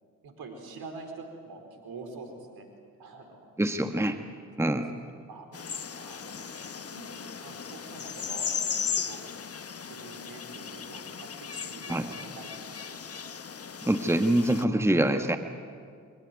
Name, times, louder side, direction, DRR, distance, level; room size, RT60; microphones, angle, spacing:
voice 1, 0.2-2.7 3.0-3.4 4.6-5.5 6.0-7.1 7.4-8.5 8.9-9.2 9.8-13.2, right 3 dB, 65° right, 4 dB, 4.7 m, -46 dB
voice 2, 3.6-4.2 4.6-4.9 11.9-12.1 13.8-15.4, right 1 dB, 5° right, 7 dB, 1.5 m, -25 dB
sound 1, 5.5-14.6, left 6 dB, 35° left, 1.3 m, -37 dB
23.5 x 19.5 x 9.5 m, 2.2 s
hypercardioid pair, 40°, 40 cm